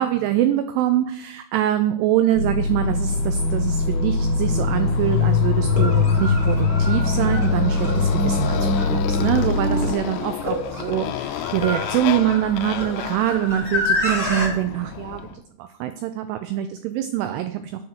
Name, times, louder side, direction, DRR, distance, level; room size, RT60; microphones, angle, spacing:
voice 1, 0.0-17.8, right 11 dB, 85° right, 9 dB, 2.4 m, -24 dB
sound 1, 2.4-9.9, left 2 dB, 60° right, 2.6 m, -23 dB
Motorcycle, 2.6-15.4, left 10 dB, 85° left, 2.6 m, -28 dB
sound 2, 4.5-4.6 5.6-14.5, left 1 dB, 5° right, 2.5 m, -29 dB
9.9 x 4.4 x 6.4 m, 0.71 s
omnidirectional pair, 5.3 m